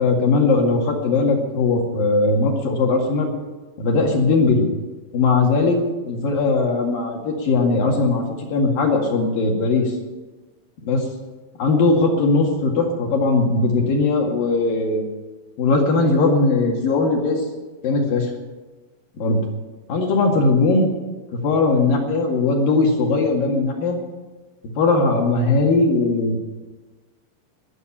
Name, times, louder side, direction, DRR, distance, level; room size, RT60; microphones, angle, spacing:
voice 1, 0.0-3.3 3.8-4.7 5.1-8.2 8.5-9.9 10.8-11.1 11.6-15.0 15.6-17.4 17.8-18.3 19.2-19.4 19.9-20.9 21.3-24.0 24.8-26.4, left 3 dB, 55° left, 1 dB, 3.4 m, -19 dB
20.0 x 7.0 x 8.7 m, 1.3 s
omnidirectional pair, 5.2 m